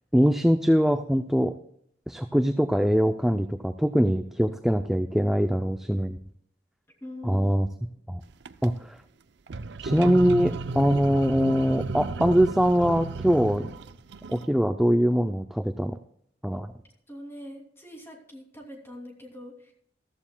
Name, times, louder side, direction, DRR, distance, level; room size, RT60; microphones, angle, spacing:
voice 1, 0.1-1.5 2.1-6.2 7.2-7.7 8.1-8.2 8.6-9.0 9.8-13.7 14.3-16.0 16.4-16.7, equal, ahead, 8 dB, 0.4 m, -23 dB
voice 2, 7.0-7.6 17.1-19.7, left 1 dB, 15° left, 0 dB, 2.8 m, -43 dB
sound 1, 8.3-8.7 9.5-14.5, right 3 dB, 65° right, 0.5 m, -34 dB
14.5 x 14.0 x 2.2 m, 0.69 s
head